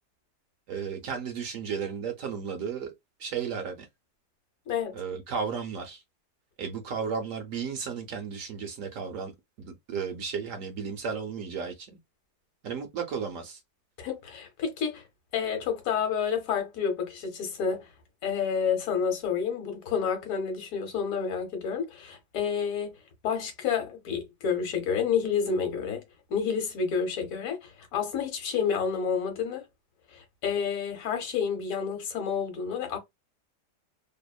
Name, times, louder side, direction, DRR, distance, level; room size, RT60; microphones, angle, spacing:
voice 1, 0.7-2.9 3.2-3.9 4.9-6.0 6.6-9.3 9.6-11.9 12.6-13.6, right 6 dB, 70° right, 0.8 m, -34 dB
voice 2, 14.0-15.0 15.3-17.9 18.2-22.9 23.2-26.0 26.3-29.6 30.1-33.0, left 6 dB, 60° left, 1.1 m, -29 dB
2.8 x 2.0 x 2.3 m
omnidirectional pair, 1.8 m